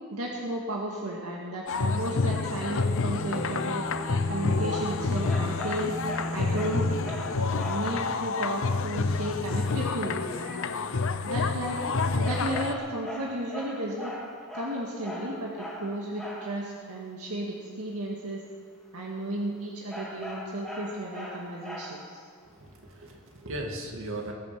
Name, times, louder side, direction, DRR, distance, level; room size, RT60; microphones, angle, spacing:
voice 1, 0.1-3.8 4.3-6.0 6.3-6.9 7.3-10.6 11.2-11.8 12.1-14.1 14.5-18.4 18.9-22.2, right 1 dB, 90° right, -2 dB, 1.9 m, -34 dB
sound 1, 1.7-12.7, left 4 dB, 65° left, 0.7 m, -29 dB
Bowed string instrument, 2.9-7.7, left 1 dB, 35° right, 1.8 m, -37 dB
sound 2, 5.2-8.0 12.2-16.6 19.9-22.2, equal, ahead, 2.2 m, -40 dB
voice 2, 22.5-24.3, right 1 dB, 65° right, 1 dB, 2.4 m, -37 dB
21.0 x 8.9 x 6.0 m, 2.3 s
head